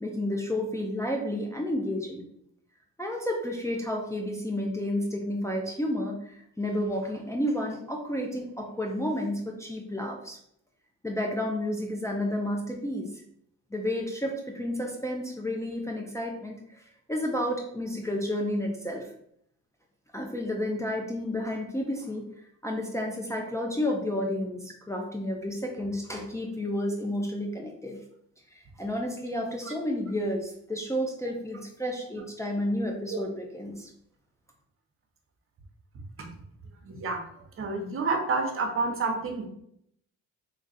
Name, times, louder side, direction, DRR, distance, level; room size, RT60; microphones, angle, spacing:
voice 1, 0.0-2.2 3.0-10.4 11.0-13.1 13.7-16.8 17.1-19.1 20.1-22.3 22.6-28.0 28.5-33.9, left 1 dB, 10° left, -1 dB, 0.5 m, -31 dB
voice 2, 36.8-37.2 37.6-39.5, right 3 dB, 45° right, 3 dB, 0.8 m, -29 dB
3.2 x 2.4 x 4.0 m, 0.73 s
cardioid pair, 90°, 30 cm